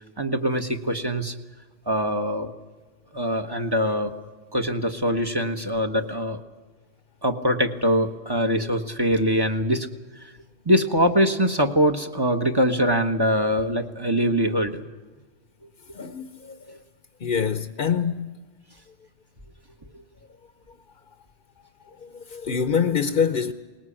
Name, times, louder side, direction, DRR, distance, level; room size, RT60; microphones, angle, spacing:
voice 1, 0.2-1.3 1.9-2.5 3.1-4.1 4.5-6.4 7.2-9.9 10.6-14.8, equal, 20° right, 1.3 m, -23 dB
voice 2, 15.9-16.8 17.2-18.4 22.0-23.5, left 7 dB, 55° left, 1.0 m, -25 dB
20.0 x 20.0 x 8.7 m
omnidirectional pair, 1.1 m